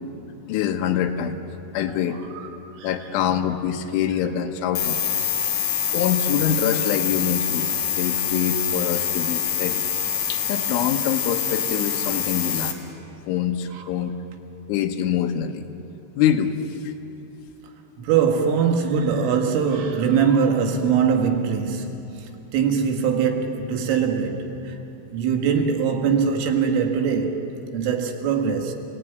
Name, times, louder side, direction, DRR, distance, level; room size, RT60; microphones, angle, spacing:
voice 1, 0.5-1.4 1.7-2.2 2.8-5.0 5.9-9.8 10.3-12.8 13.3-14.2 14.7-15.6 16.2-16.6, left 9 dB, 80° left, 3.5 m, -25 dB
sound 1, 4.7-12.7, left 9 dB, 50° left, 2.4 m, -25 dB
voice 2, 18.0-24.8 25.1-28.7, right 6 dB, 90° right, 4.4 m, -22 dB
28.5 x 18.5 x 9.4 m
omnidirectional pair, 5.6 m